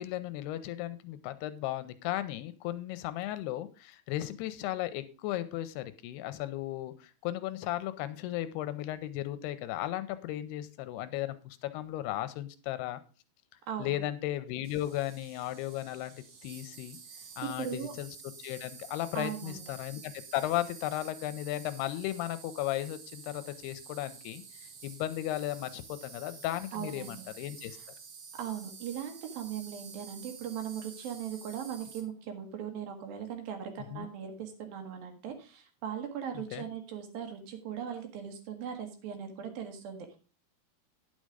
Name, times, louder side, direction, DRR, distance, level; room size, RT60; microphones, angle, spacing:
voice 1, 0.0-13.0 13.8-16.1 16.4-17.0 17.4-27.8 33.9-34.1 36.3-36.6, left 14 dB, 85° left, 12 dB, 2.7 m, -35 dB
voice 2, 13.7-14.0 17.4-17.9 19.1-19.6 26.7-27.3 28.3-40.2, right 8 dB, 70° right, 6 dB, 3.0 m, -39 dB
Insect, 14.6-32.0, right 6 dB, 50° right, 2.2 m, -50 dB
10.0 x 6.4 x 4.9 m, 0.34 s
omnidirectional pair, 4.7 m